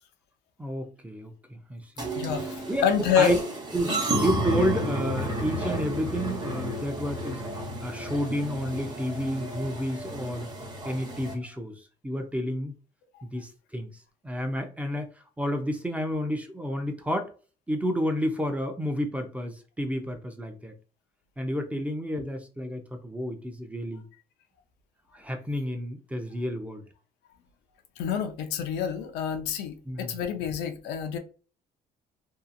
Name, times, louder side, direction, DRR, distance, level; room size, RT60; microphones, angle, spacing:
voice 1, 0.6-2.1 2.7-2.8 3.2-3.4 3.7-7.4 7.8-10.5 10.8-12.7 13.2-13.9 14.2-15.1 15.4-17.3 17.7-20.7 21.4-24.0 25.1-26.8 29.9-30.2, equal, 10° right, 0.5 m, -30 dB
sound 1, 2.0-11.3, right 1 dB, 25° right, 0.9 m, -32 dB
voice 2, 2.1-3.3 28.0-31.2, left 8 dB, 80° left, 0.5 m, -27 dB
2.7 x 2.3 x 2.5 m
cardioid pair, 110°, 17 cm